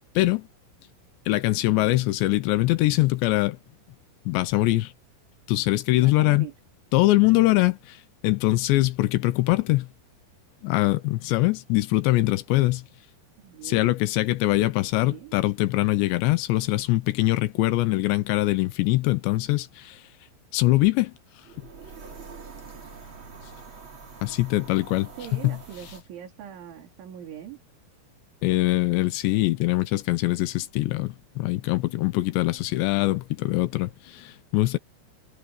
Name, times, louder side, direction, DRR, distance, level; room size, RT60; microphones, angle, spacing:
voice 1, 0.2-0.5 1.3-3.6 4.3-4.9 5.5-6.5 6.9-8.0 8.2-9.9 10.6-12.8 13.6-20.0 20.5-21.1 24.2-25.1 25.4-25.6 28.4-34.8, left 18 dB, 75° left, 2.8 m, -23 dB
voice 2, 1.7-2.1 6.0-6.5 13.4-13.9 15.0-15.4 25.2-27.6, right 9 dB, 70° right, 6.2 m, -41 dB
sound 1, 21.4-26.0, right 5 dB, 35° right, 2.6 m, -45 dB
omnidirectional pair, 5.7 m